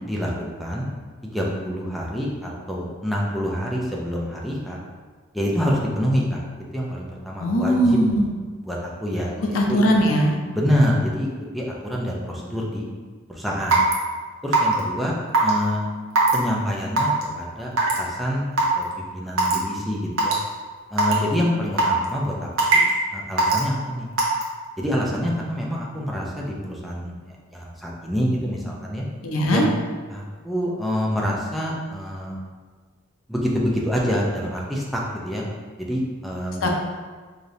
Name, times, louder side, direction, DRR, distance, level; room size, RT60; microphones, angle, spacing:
voice 1, 0.1-0.9 1.2-4.8 5.3-6.4 6.7-8.0 8.6-9.8 10.5-11.3 11.5-12.9 13.3-13.9 14.4-15.1 15.4-15.9 16.3-17.7 18.0-20.3 20.9-22.8 23.1-24.1 24.8-27.1 27.5-29.1 29.5-29.6 30.1-32.4 33.3-35.4 35.8-36.7, equal, ahead, -4 dB, 0.5 m, -26 dB
voice 2, 7.4-8.3 9.5-10.3 29.2-29.6 36.6-36.7, equal, 85° left, 1 dB, 0.6 m, -19 dB
Raindrop / Water tap faucet / Drip, 13.7-13.9 14.5-14.8 15.3-15.5 16.2-16.3 17.0-17.2 17.8-18.0 18.6-18.7 19.4-19.6 20.2-20.3 21.0-21.1 21.8-22.1 22.6-22.9 23.4-23.6 24.2-24.4, right 3 dB, 85° right, 0.8 m, -18 dB
4.9 x 2.6 x 2.7 m, 1.5 s
head